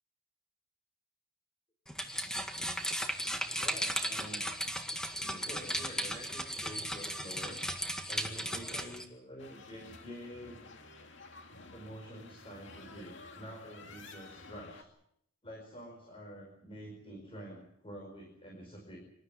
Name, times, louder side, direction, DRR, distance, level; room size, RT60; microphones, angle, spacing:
sound 1, 1.9-9.0, equal, 5° left, 1.9 m, -36 dB
voice 1, 3.5-4.5 5.2-7.6 8.1-10.6 11.7-14.9 15.4-19.0, equal, 25° left, 0 dB, 5.1 m, -48 dB
sound 2, 9.4-14.8, left 3 dB, 55° left, 2.4 m, -52 dB
26.0 x 13.5 x 10.0 m, 0.75 s
head